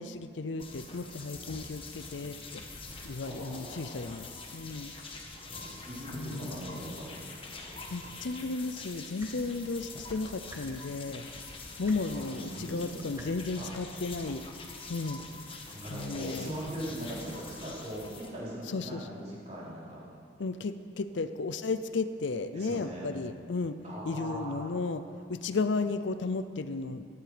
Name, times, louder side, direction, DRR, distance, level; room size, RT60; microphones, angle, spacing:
voice 1, 0.0-2.6 3.0-4.9 6.1-6.8 7.9-11.3 11.8-14.4 14.9-15.2 15.9-16.6 18.7-19.1 20.4-23.8 24.0-25.0 25.3-27.1, left 3 dB, 70° left, 11 dB, 0.6 m, -34 dB
sound 1, 0.6-18.3, left 3 dB, 30° left, 1.5 m, -45 dB
voice 2, 3.2-4.3 5.5-7.2 12.1-13.3 13.6-13.7 15.7-20.1 22.5-23.1 23.8-24.7, right 1 dB, 35° right, -7 dB, 4.4 m, -40 dB
sound 2, 9.2-9.3 10.5-10.6 11.8-12.0 13.1-13.3 14.5-14.6, right 1 dB, 15° right, 1.5 m, -48 dB
16.5 x 12.5 x 5.0 m, 2.2 s
head